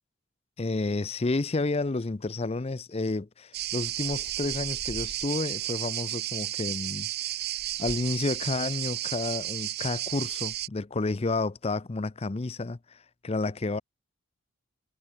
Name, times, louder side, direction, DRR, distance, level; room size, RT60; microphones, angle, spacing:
voice 1, 0.6-7.1 7.8-13.0 13.2-13.8, left 3 dB, 30° left, 0.5 m, -30 dB
sound 1, 3.5-10.7, right 14 dB, 45° right, 0.8 m, -33 dB
head